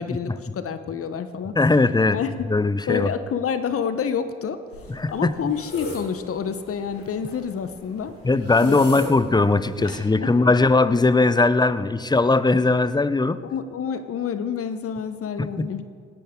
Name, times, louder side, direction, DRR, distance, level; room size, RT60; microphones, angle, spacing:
voice 1, 0.0-1.5 2.1-2.5 2.9-4.6 5.1-8.1 8.6-9.0 9.8-9.9 10.2-10.5 13.4-15.8, left 7 dB, 45° left, 11 dB, 1.1 m, -28 dB
voice 2, 1.6-2.2 2.5-3.1 4.9-5.4 8.2-13.4 15.4-15.7, left 3 dB, 15° left, 15 dB, 0.8 m, -19 dB
sound 1, 4.7-10.0, left 2 dB, 85° left, 2.6 m, -38 dB
27.0 x 11.0 x 3.8 m, 2.2 s
figure-of-eight pair, 45°, 31 cm